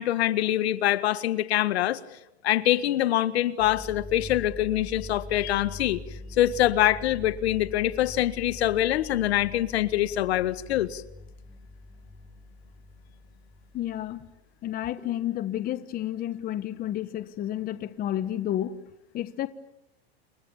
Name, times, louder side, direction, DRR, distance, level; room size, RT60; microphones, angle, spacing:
voice 1, 0.0-2.0 2.4-6.0 6.4-11.0, left 13 dB, 75° left, 1.7 m, -24 dB
sound 1, 3.6-14.4 15.0-15.3, left 2 dB, 5° right, 3.1 m, -43 dB
voice 2, 13.7-14.3 14.6-18.8 19.1-19.5, left 12 dB, 25° left, 1.2 m, -31 dB
29.5 x 28.0 x 7.3 m
supercardioid pair, 135°, 32 cm